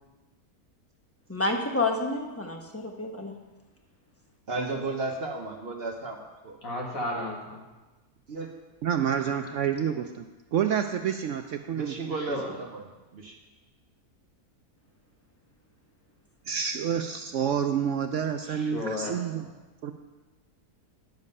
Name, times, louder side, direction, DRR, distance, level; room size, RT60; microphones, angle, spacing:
voice 1, 1.3-3.3, left 2 dB, 10° left, 2 dB, 0.8 m, -29 dB
voice 2, 4.5-6.2 6.4-6.6 8.3-8.5 11.7-12.8 13.1-13.4, right 3 dB, 45° right, 3 dB, 1.0 m, -33 dB
voice 3, 6.6-7.7 12.1-12.6 18.5-19.5, left 1 dB, 65° left, -1 dB, 2.1 m, -34 dB
voice 4, 8.8-10.3 10.5-11.9 16.5-19.5 19.8-19.9, right 8 dB, 65° right, 6 dB, 0.8 m, -28 dB
10.5 x 7.4 x 5.4 m, 1.2 s
omnidirectional pair, 1.6 m